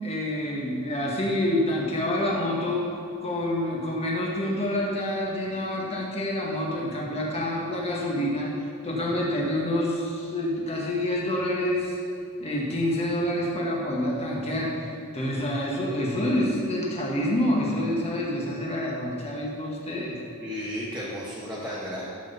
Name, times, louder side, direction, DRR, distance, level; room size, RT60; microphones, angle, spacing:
voice 1, 0.0-2.9 3.2-8.5 8.8-12.0 12.4-14.7 15.1-20.2, left 1 dB, 30° left, -3 dB, 1.9 m, -27 dB
voice 2, 20.4-22.0, equal, 5° right, -9 dB, 1.6 m, -33 dB
13.5 x 7.8 x 4.2 m, 2.4 s
head